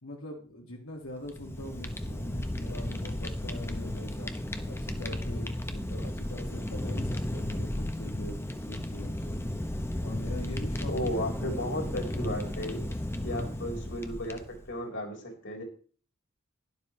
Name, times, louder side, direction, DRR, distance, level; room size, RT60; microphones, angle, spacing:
voice 1, 0.0-4.3 4.6-8.4 8.7-9.3 10.0-11.6 13.3-13.7, left 1 dB, 90° left, -1 dB, 2.2 m, -42 dB
Fire, 1.1-14.7, left 1 dB, 10° left, 0.9 m, -34 dB
voice 2, 10.9-12.9 13.2-14.4 14.7-15.6, equal, 60° left, 1 dB, 3.8 m, -34 dB
12.0 x 11.5 x 3.2 m, 0.42 s
head